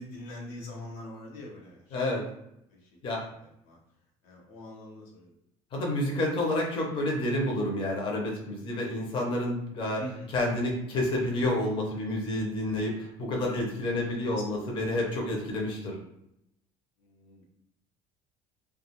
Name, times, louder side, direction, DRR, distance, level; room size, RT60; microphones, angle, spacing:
voice 1, 0.0-2.0 2.7-2.9 3.4-3.8 4.2-5.3 10.0-10.3 14.3-14.4 17.0-17.5, left 1 dB, 90° left, -2 dB, 0.8 m, -43 dB
voice 2, 1.9-2.2 3.0-3.2 5.7-10.0 10.3-16.0, left 1 dB, 40° left, -1 dB, 0.6 m, -29 dB
2.4 x 2.2 x 2.9 m, 0.79 s
cardioid pair, 150°, 13 cm